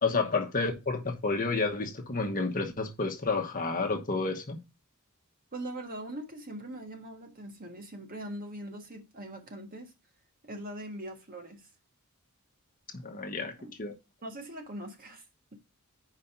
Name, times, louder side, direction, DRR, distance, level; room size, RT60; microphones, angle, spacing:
voice 1, 0.0-4.6 12.9-13.9, left 3 dB, 40° left, 1.0 m, -30 dB
voice 2, 5.5-9.9 10.4-11.7 13.6-13.7 14.2-15.2, right 1 dB, 40° right, 1.5 m, -41 dB
5.2 x 5.0 x 5.8 m
head